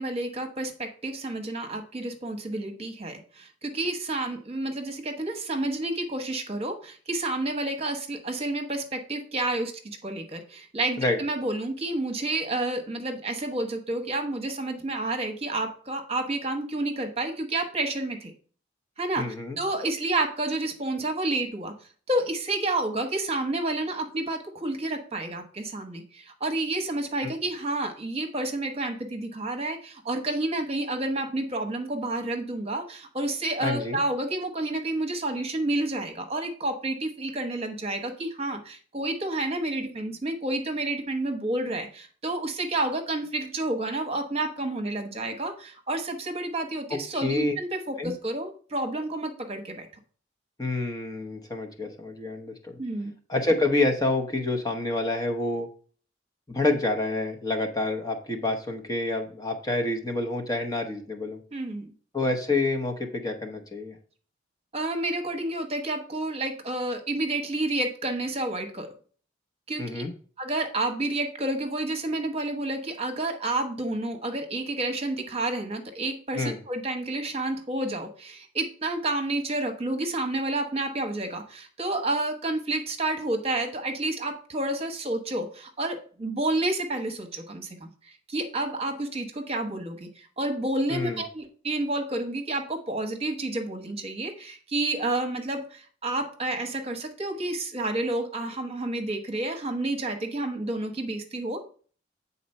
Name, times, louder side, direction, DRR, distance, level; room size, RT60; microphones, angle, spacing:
voice 1, 0.0-18.3 19.0-19.2 19.6-21.7 22.1-49.9 52.8-53.1 61.5-61.9 64.7-68.9 69.7-70.0 70.4-101.6, right 2 dB, 30° right, 5 dB, 1.1 m, -30 dB
voice 2, 19.2-19.6 33.6-34.0 46.9-47.5 48.0-48.1 50.6-52.7 53.3-55.7 56.5-61.4 62.1-64.0 69.8-70.1 76.3-76.6 90.9-91.2, left 2 dB, 20° left, 3 dB, 0.9 m, -28 dB
8.4 x 4.1 x 5.4 m, 0.43 s
head